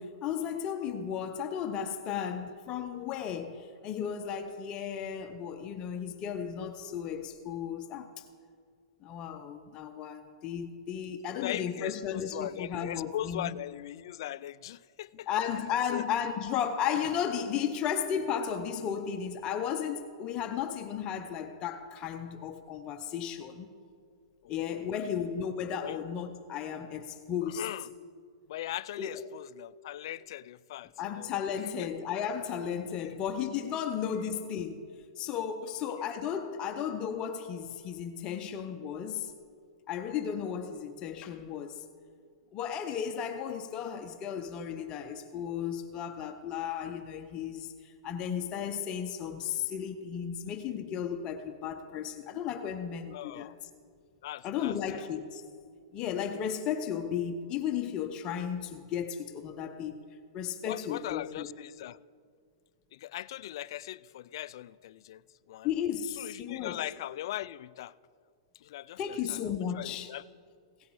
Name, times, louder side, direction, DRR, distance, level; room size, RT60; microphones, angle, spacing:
voice 1, 0.0-8.2 9.0-13.5 15.3-23.7 24.5-27.6 29.0-29.2 31.0-34.9 35.2-39.3 39.9-41.8 42.5-53.5 54.4-55.5 55.9-60.0 60.3-61.5 65.6-66.8 69.0-70.1, left 8 dB, 30° left, 0.7 m, -34 dB
voice 2, 11.3-15.3 15.9-16.0 24.4-24.9 25.8-26.0 27.4-27.9 28.5-31.3 31.6-31.9 32.9-33.1 34.2-34.3 35.6-36.1 53.1-53.6 54.2-55.1 60.6-62.0 62.9-65.2 65.5-65.7 66.2-67.9 68.6-70.2, left 13 dB, 60° left, 0.3 m, -40 dB
16.5 x 8.2 x 4.7 m
hypercardioid pair, 135°, 3 cm